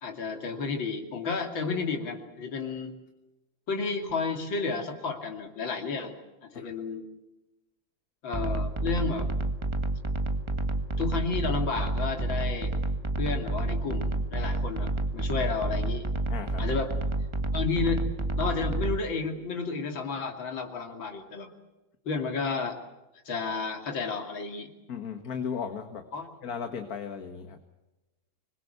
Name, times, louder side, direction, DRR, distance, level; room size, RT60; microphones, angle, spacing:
voice 1, 0.0-2.9 3.7-6.2 6.4-7.0 8.2-9.3 11.0-12.7 13.2-16.1 16.6-17.0 17.5-18.0 18.4-21.5 22.1-22.8 23.3-24.7 26.1-26.3, left 4 dB, 75° left, 4 dB, 3.5 m, -32 dB
sound 1, 8.3-19.0, right 2 dB, 15° right, 1.4 m, -29 dB
voice 2, 16.3-16.6 24.9-26.1 26.4-27.6, left 6 dB, 50° left, 7 dB, 1.9 m, -36 dB
25.5 x 21.5 x 8.1 m, 1.0 s
omnidirectional pair, 2.1 m